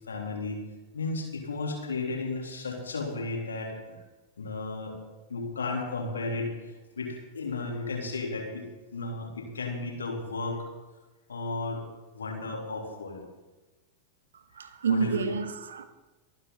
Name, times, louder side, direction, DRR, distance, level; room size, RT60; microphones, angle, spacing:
voice 1, 0.1-0.6 0.9-4.0 4.4-5.0 5.3-10.7 11.3-11.8 12.1-13.2 14.9-15.3, left 3 dB, 70° left, 3.4 m, -34 dB
voice 2, 14.6-15.8, right 5 dB, 65° right, 1.1 m, -29 dB
24.0 x 9.5 x 3.9 m
figure-of-eight pair, 90°, 0 cm